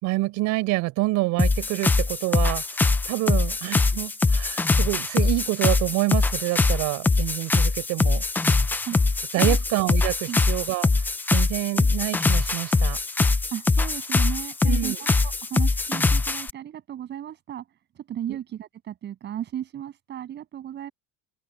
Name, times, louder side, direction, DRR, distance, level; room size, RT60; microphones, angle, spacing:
voice 1, 0.0-8.2 9.3-13.0 14.6-15.0, right 20 dB, 55° right, 4.5 m, -27 dB
sound 1, 1.4-16.5, left 3 dB, 5° left, 0.4 m, -22 dB
voice 2, 13.5-17.6 17.9-20.9, right 10 dB, 30° right, 7.7 m, -35 dB
open air
cardioid pair, 180°, 34 cm